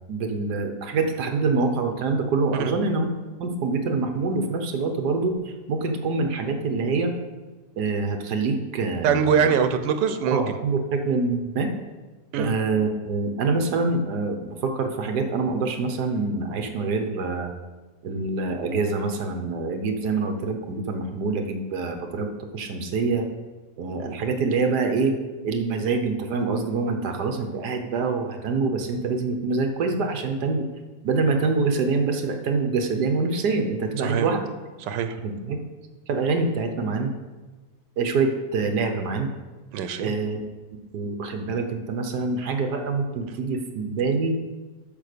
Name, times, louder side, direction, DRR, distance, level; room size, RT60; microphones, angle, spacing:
voice 1, 0.1-3.1 3.4-7.1 7.8-9.5 10.3-11.7 12.4-17.5 18.0-23.3 23.8-25.2 25.4-30.7 31.0-34.5 35.2-35.6 36.1-37.1 38.0-39.3 40.0-40.4 40.9-44.4, right 4 dB, 70° right, 5 dB, 1.6 m, -25 dB
voice 2, 9.0-10.6 12.3-12.5 34.0-34.3 34.8-35.2 39.7-40.1, right 7 dB, 85° right, 10 dB, 1.4 m, -23 dB
8.7 x 6.2 x 6.7 m, 1.3 s
omnidirectional pair, 1.8 m